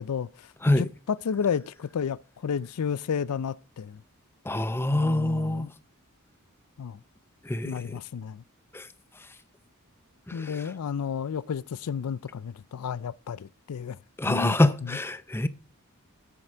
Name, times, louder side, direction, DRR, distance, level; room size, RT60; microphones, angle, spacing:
voice 1, 0.0-4.0 4.9-5.7 6.8-7.0 7.6-8.4 10.3-14.0 14.2-14.6 14.8-15.0, left 7 dB, 85° left, 0.4 m, -32 dB
voice 2, 4.5-5.7 7.4-8.0 8.7-8.9 10.3-10.6 14.2-15.5, left 1 dB, 10° left, 0.5 m, -25 dB
9.9 x 7.8 x 5.0 m
head